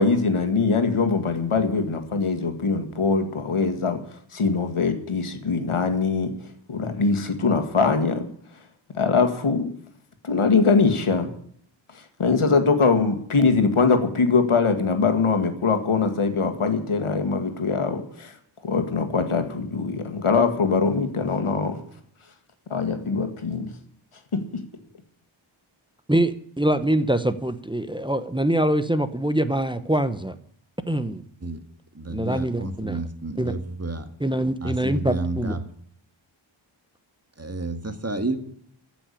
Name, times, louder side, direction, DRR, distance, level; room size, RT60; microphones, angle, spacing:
voice 1, 0.0-6.3 6.7-8.3 8.9-9.7 10.2-11.3 11.9-18.4 18.6-21.8 22.7-23.7 24.3-24.6, left 4 dB, 90° left, 8 dB, 1.9 m, -22 dB
voice 2, 26.1-30.3 30.9-31.2 32.1-33.0 33.4-33.5 34.2-35.6, right 1 dB, 10° right, 11 dB, 0.9 m, -24 dB
voice 3, 31.9-34.1 34.6-35.6 37.4-38.4, right 2 dB, 30° right, 8 dB, 1.8 m, -30 dB
15.0 x 6.2 x 10.0 m, 0.64 s
wide cardioid pair, 85°, 49 cm